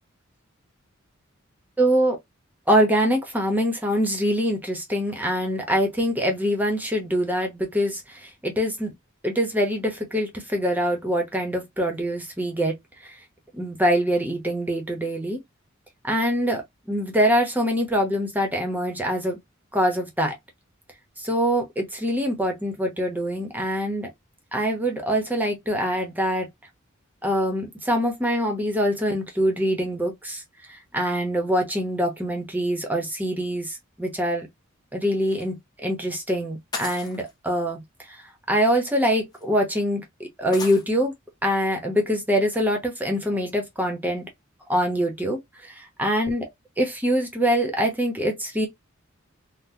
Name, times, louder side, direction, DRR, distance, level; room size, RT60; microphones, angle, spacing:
voice 1, 1.8-2.2 2.7-8.9 9.2-12.8 13.0-13.2 13.5-15.4 16.0-19.4 19.7-20.3 21.2-24.1 24.5-26.5 27.2-30.4 30.7-34.5 34.9-37.8 38.1-38.2 38.5-41.1 41.4-44.2 44.7-46.4 46.8-48.7, equal, 10° right, 0.9 m, -24 dB
sound 1, 35.3-35.5 36.7-37.3 38.5-38.6 39.3-39.4 40.5-40.9, left 3 dB, 20° left, 0.8 m, -35 dB
3.9 x 2.2 x 2.7 m
head